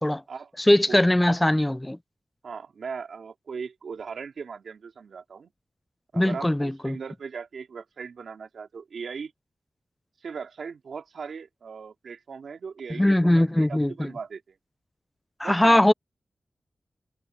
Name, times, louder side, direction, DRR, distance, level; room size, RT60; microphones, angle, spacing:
voice 1, 0.6-2.0 6.1-7.0 13.0-14.1 15.4-15.9, left 1 dB, 10° left, 0.6 m, -21 dB
voice 2, 2.4-5.5 6.1-9.3 10.2-14.6 15.4-15.9, right 5 dB, 85° right, 3.5 m, -38 dB
wide cardioid pair, 100°, 0 cm